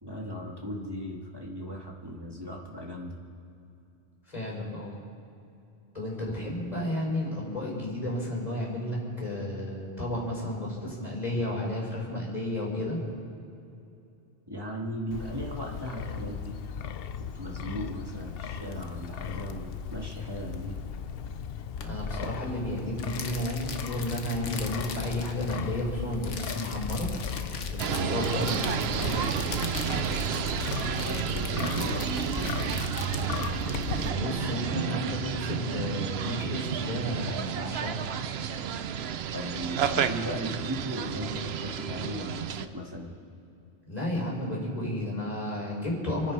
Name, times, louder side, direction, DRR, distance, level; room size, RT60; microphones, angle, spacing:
voice 1, 0.0-3.2 14.5-16.6 17.2-20.8 27.8-28.2 31.1-32.8 39.3-43.1, equal, 20° right, -2 dB, 2.2 m, -37 dB
voice 2, 4.3-5.0 5.9-13.0 21.8-27.1 27.7-29.3 33.9-38.1 43.8-46.3, left 1 dB, 35° left, -4 dB, 4.4 m, -32 dB
Wind, 15.1-34.1, left 7 dB, 60° left, 0.8 m, -37 dB
sound 1, 21.8-34.4, left 5 dB, 80° left, 1.4 m, -40 dB
sound 2, 27.8-42.7, right 8 dB, 65° right, 0.9 m, -31 dB
27.5 x 9.9 x 4.9 m, 2.7 s
omnidirectional pair, 1.2 m